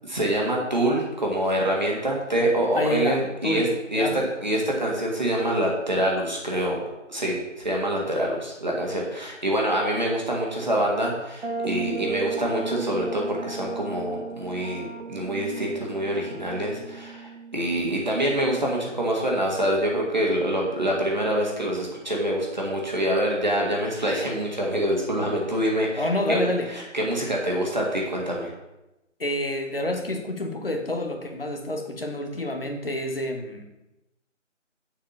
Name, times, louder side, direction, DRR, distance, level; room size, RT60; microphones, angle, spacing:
voice 1, 0.1-6.8 7.1-28.5, right 1 dB, 35° right, -2 dB, 1.7 m, -26 dB
voice 2, 2.7-3.7 3.9-4.2 26.0-26.7 29.2-33.6, left 1 dB, 50° left, 3 dB, 1.4 m, -28 dB
sound 1, 11.4-19.0, right 4 dB, 55° right, 0.8 m, -36 dB
7.2 x 5.0 x 7.1 m, 0.95 s
figure-of-eight pair, 170°, 38 cm